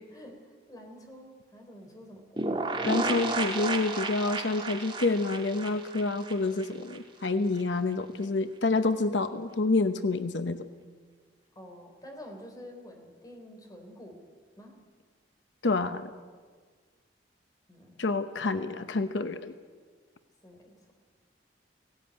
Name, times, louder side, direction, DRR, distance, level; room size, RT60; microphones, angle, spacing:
voice 1, 0.1-2.9 11.6-14.2 14.6-14.8 17.7-18.0 20.4-20.9, equal, 20° left, 3 dB, 3.5 m, -48 dB
sound 1, 2.4-7.0 7.2-7.3 7.6-7.7, right 2 dB, 25° right, 2.2 m, -32 dB
voice 2, 2.8-10.7 15.6-16.1 18.0-19.5, left 3 dB, 85° left, 10 dB, 0.8 m, -28 dB
17.0 x 17.0 x 8.8 m, 1.5 s
head